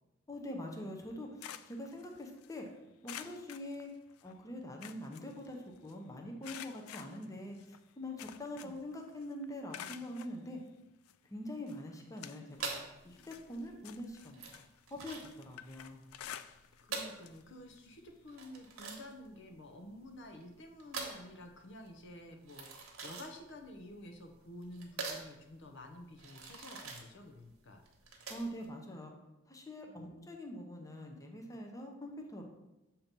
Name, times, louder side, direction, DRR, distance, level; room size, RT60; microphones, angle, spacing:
voice 1, 0.3-1.3 1.7-2.7 3.0-3.9 4.2-7.6 8.0-10.6 11.3-12.7 13.0-14.4 14.9-16.0 28.3-29.1 29.5-32.5, left 1 dB, 15° left, 1 dB, 0.6 m, -44 dB
sound 1, 1.0-2.6 3.0-4.3 4.6-5.9 6.4-8.9 9.2-10.4 11.1-11.2 11.7-12.8 13.1-16.9 17.2-17.4 17.8-17.9 19.1-19.2, left 10 dB, 85° left, 0.3 m, -50 dB
sound 2, 12.5-28.7, right 4 dB, 80° right, 1.1 m, -45 dB
voice 2, 16.4-27.8 29.8-30.1, left 1 dB, 60° left, 4 dB, 0.6 m, -51 dB
7.1 x 2.9 x 5.2 m, 0.95 s
head